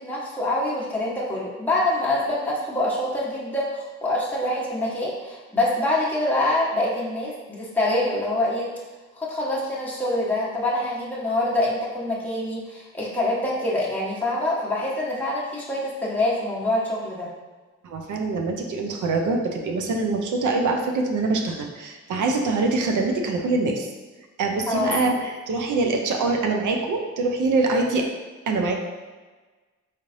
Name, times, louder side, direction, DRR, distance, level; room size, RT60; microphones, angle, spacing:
voice 1, 0.0-8.7 9.1-17.3 24.7-25.0, left 1 dB, 5° left, -6 dB, 1.0 m, -25 dB
voice 2, 17.8-23.9 24.4-28.0 28.5-28.7, right 3 dB, 85° right, 3 dB, 0.5 m, -24 dB
4.1 x 3.2 x 2.6 m, 1.3 s
cardioid pair, 45°, 30 cm